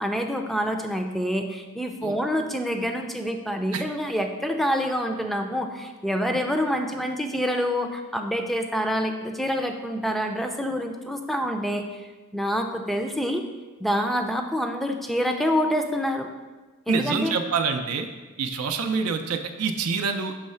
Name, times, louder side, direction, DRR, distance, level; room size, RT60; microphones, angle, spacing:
voice 1, 0.0-12.0 12.3-13.4 13.8-16.3 16.9-17.4, equal, ahead, 4 dB, 0.4 m, -27 dB
voice 2, 16.9-18.1 18.4-20.4, right 5 dB, 85° right, 6 dB, 0.5 m, -26 dB
5.6 x 3.1 x 5.5 m, 1.2 s
head